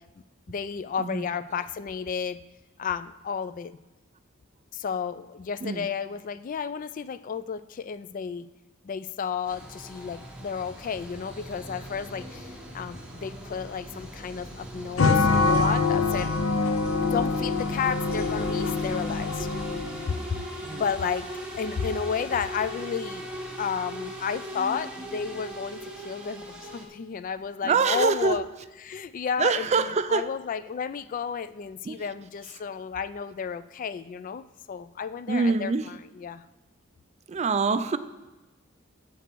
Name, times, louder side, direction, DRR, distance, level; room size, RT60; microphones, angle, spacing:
voice 1, 0.5-2.4 2.8-3.7 4.7-8.4 8.8-16.3 17.0-19.5 20.1-20.4 20.7-21.3 21.6-23.3 23.6-25.8 26.0-28.5 28.9-36.4, left 6 dB, 40° left, 13 dB, 0.3 m, -32 dB
sound 1, 9.5-26.8, equal, 5° right, 1.4 m, -39 dB
sound 2, 15.0-20.1, left 3 dB, 85° left, 0.6 m, -25 dB
voice 2, 27.6-28.4 29.4-30.3 31.8-32.0 35.3-35.9 37.3-38.0, right 4 dB, 35° right, 12 dB, 0.4 m, -25 dB
8.1 x 7.8 x 4.6 m, 1.1 s
head